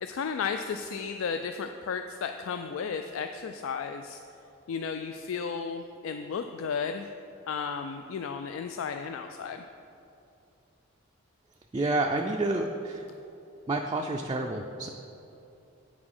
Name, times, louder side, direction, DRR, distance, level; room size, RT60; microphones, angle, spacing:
voice 1, 0.0-4.2 4.7-7.1 7.5-9.6, left 6 dB, 80° left, 7 dB, 0.3 m, -34 dB
voice 2, 11.7-13.1 13.7-14.9, right 2 dB, 20° right, 2 dB, 0.3 m, -29 dB
8.4 x 4.9 x 5.5 m, 2.9 s
head